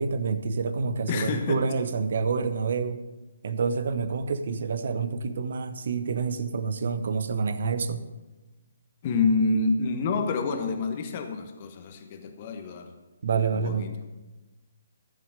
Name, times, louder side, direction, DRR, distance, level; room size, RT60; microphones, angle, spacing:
voice 1, 0.0-3.0 3.4-8.1 13.2-13.9, right 5 dB, 55° right, 12 dB, 0.9 m, -28 dB
voice 2, 1.1-1.6 9.0-12.9 13.5-13.9, left 3 dB, 40° left, 6 dB, 1.3 m, -27 dB
13.5 x 7.4 x 5.2 m, 1.2 s
figure-of-eight pair, 140°, 0 cm